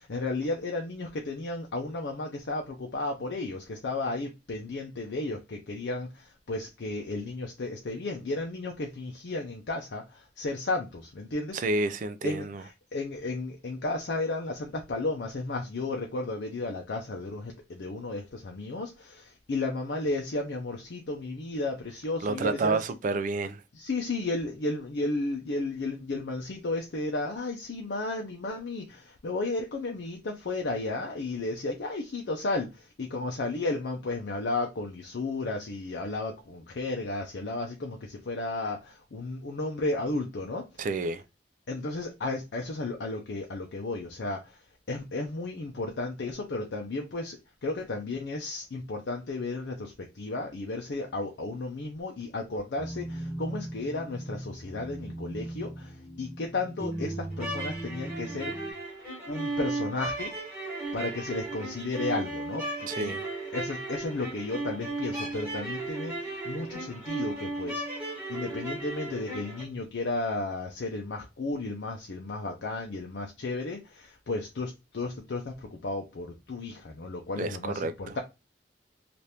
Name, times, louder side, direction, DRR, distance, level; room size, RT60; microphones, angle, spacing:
voice 1, 0.0-11.6 12.2-22.8 23.7-40.9 41.7-58.7 59.3-60.3 60.9-63.1 63.5-78.2, left 2 dB, 70° left, 0.5 m, -33 dB
voice 2, 11.5-12.6 22.2-23.6 40.8-41.2 62.9-63.2 77.4-78.2, right 3 dB, 50° right, 0.4 m, -30 dB
sound 1, 52.8-58.7, right 1 dB, 15° left, 1.0 m, -38 dB
sound 2, 57.3-69.6, right 2 dB, 10° right, 1.3 m, -35 dB
2.8 x 2.5 x 3.3 m
head